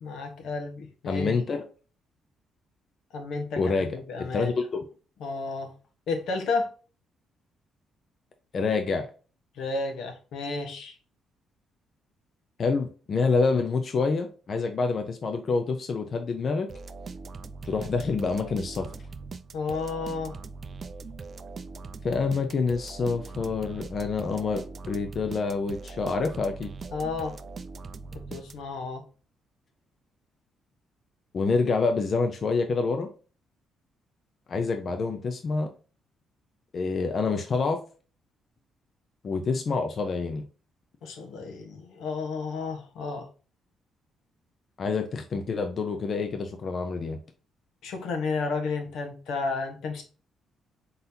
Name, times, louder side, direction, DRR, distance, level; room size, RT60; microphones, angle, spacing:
voice 1, 0.0-1.4 3.1-4.6 5.2-5.7 6.1-6.7 9.5-11.0 19.5-20.4 26.9-27.4 28.1-29.0 41.0-43.3 47.8-50.0, left 4 dB, 80° left, 1.2 m, -32 dB
voice 2, 1.1-1.7 3.6-3.9 4.2-4.8 8.5-9.1 12.6-16.7 17.6-18.9 22.0-26.7 31.3-33.1 34.5-35.7 36.7-37.8 39.2-40.4 44.8-47.2, left 4 dB, 50° left, 0.6 m, -27 dB
sound 1, 16.7-28.9, right 4 dB, 45° right, 0.4 m, -41 dB
4.0 x 3.9 x 2.8 m
cardioid pair, 90°, 0 cm